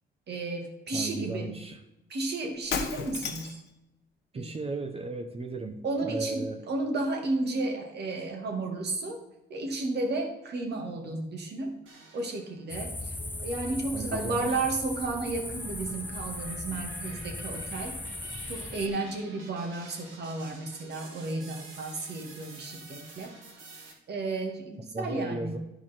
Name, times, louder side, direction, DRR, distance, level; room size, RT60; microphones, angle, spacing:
voice 1, 0.3-1.5 2.1-3.6 4.3-4.5 5.8-9.2 9.5-11.8 12.1-18.0 18.5-23.3 24.1-25.6, right 2 dB, 55° right, 2 dB, 2.0 m, -33 dB
voice 2, 0.9-1.8 4.3-6.6 13.9-14.6 24.9-25.6, right 3 dB, 30° right, 5 dB, 0.9 m, -35 dB
Shatter, 2.6-3.7, left 6 dB, 60° left, 1.0 m, -33 dB
sound 1, 11.9-12.7 13.2-23.9, right 3 dB, 80° right, 2.2 m, -50 dB
sound 2, 12.7-18.9, left 2 dB, 10° left, 0.7 m, -38 dB
12.0 x 4.6 x 4.4 m, 0.90 s
cardioid pair, 90°, 20 cm